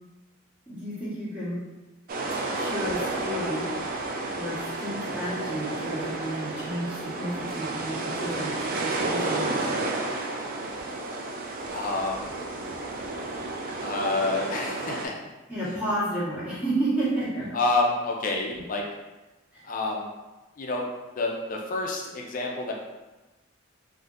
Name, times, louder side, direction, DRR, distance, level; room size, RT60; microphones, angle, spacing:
voice 1, 0.7-1.6 2.5-3.6 4.3-9.5 15.5-17.6 18.5-18.6 19.5-19.6, right 1 dB, 5° right, -12 dB, 1.3 m, -31 dB
sound 1, 2.1-15.1, right 2 dB, 45° right, 0.3 m, -31 dB
voice 2, 11.7-12.2 13.8-15.2 17.5-18.8 19.6-20.1 20.6-20.8 21.2-22.7, left 2 dB, 40° left, 0 dB, 0.4 m, -28 dB
3.6 x 2.6 x 2.4 m, 1.1 s
head